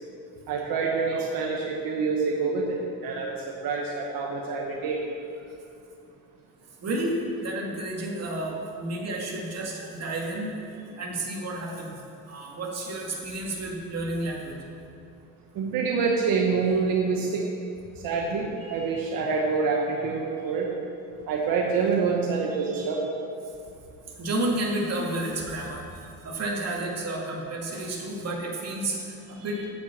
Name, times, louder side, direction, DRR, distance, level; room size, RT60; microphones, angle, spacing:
voice 1, 0.5-5.0 15.5-17.4 18.0-20.7 21.3-23.1, right 4 dB, 80° right, -1 dB, 1.2 m, -26 dB
voice 2, 6.8-12.0 12.3-14.6 24.2-25.8 26.2-29.6, right 1 dB, 45° right, -2 dB, 2.3 m, -31 dB
8.7 x 7.3 x 7.3 m, 2.6 s
cardioid pair, 120°, 34 cm